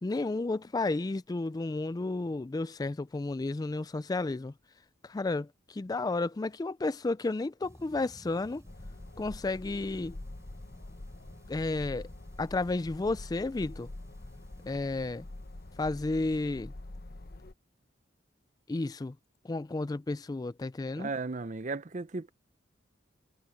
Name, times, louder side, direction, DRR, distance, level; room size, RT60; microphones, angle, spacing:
voice 1, 0.0-4.5 5.0-8.6 9.2-10.2 11.5-12.1 12.4-13.9 14.6-15.3 15.8-16.7 18.7-19.2 19.4-21.1, left 2 dB, 20° left, 0.3 m, -32 dB
sound 1, 7.6-16.6, equal, 15° right, 3.4 m, -56 dB
sound 2, 8.6-17.5, left 2 dB, 50° left, 0.9 m, -45 dB
voice 2, 21.0-22.3, right 3 dB, 40° right, 0.6 m, -35 dB
head